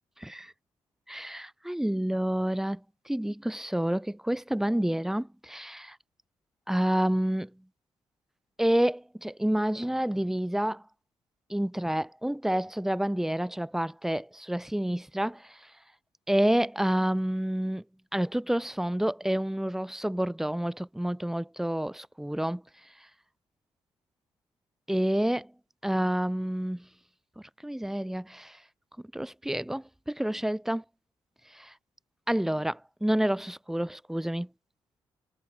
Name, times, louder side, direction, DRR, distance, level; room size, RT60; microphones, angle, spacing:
voice 1, 0.2-0.5 1.1-2.8 3.1-6.0 6.7-7.5 8.6-10.8 11.5-15.6 16.3-17.8 18.1-22.6 24.9-25.5 25.8-26.8 27.4-28.6 29.1-30.8 31.5-31.7 32.3-34.5, right 1 dB, 5° right, 0.4 m, -29 dB
supercardioid pair, 45°, 11 cm